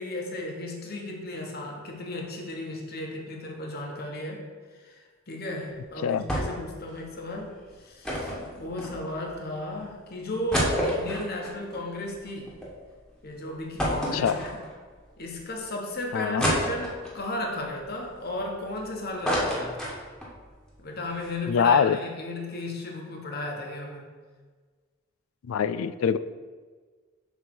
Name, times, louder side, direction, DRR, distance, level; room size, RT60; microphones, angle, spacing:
voice 1, 0.0-4.4 4.7-12.5 13.2-14.6 15.2-19.9 20.8-24.0, left 1 dB, 50° left, 0 dB, 1.2 m, -35 dB
sound 1, 6.3-6.7 7.0-7.1 8.0-9.3 9.8-9.9 10.3-12.7 13.1-13.2 13.8-14.9 15.4-15.5 16.4-17.2 17.8-18.8 19.0-20.4 20.7-20.8 21.1-21.3, equal, 5° left, 1.4 m, -29 dB
voice 2, 16.1-16.5 21.5-22.0 25.4-26.2, left 7 dB, 85° left, 14 dB, 0.3 m, -23 dB
7.1 x 3.4 x 6.1 m, 1.5 s
head